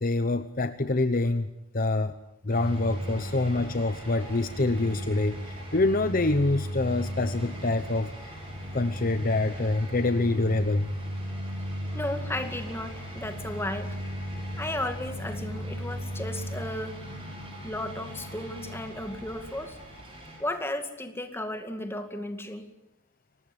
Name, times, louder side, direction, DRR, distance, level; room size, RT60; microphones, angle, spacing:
voice 1, 0.0-1.5 1.7-2.1 2.4-8.1 8.7-10.9, left 2 dB, 40° left, 10 dB, 0.8 m, -26 dB
sound 1, 2.5-20.4, equal, 25° right, 7.9 m, -36 dB
voice 2, 11.9-14.0 14.6-17.0 17.6-19.8 20.4-22.7, left 1 dB, 10° left, 6 dB, 2.2 m, -34 dB
24.0 x 19.0 x 9.8 m, 0.91 s
head